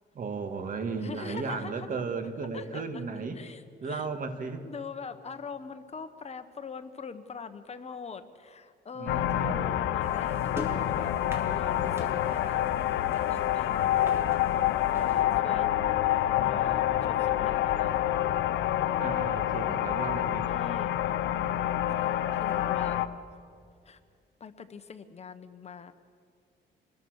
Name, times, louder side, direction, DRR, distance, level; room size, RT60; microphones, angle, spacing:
voice 1, 0.1-3.4 3.8-4.7 8.9-9.6 19.0-20.5, right 4 dB, 45° right, 7 dB, 2.2 m, -35 dB
voice 2, 1.0-1.9 2.5-3.0 3.3-4.1 4.7-12.6 13.1-15.7 16.4-18.0 19.0-19.4 20.5-21.0 21.9-23.0 23.8-24.0 24.4-25.9, left 5 dB, 35° left, 9 dB, 1.3 m, -42 dB
sound 1, 9.1-23.1, left 12 dB, 85° left, 1.0 m, -27 dB
sound 2, 10.0-15.2, equal, 15° right, 4.0 m, -46 dB
27.5 x 21.0 x 6.6 m, 2.2 s
cardioid pair, 110°, 19 cm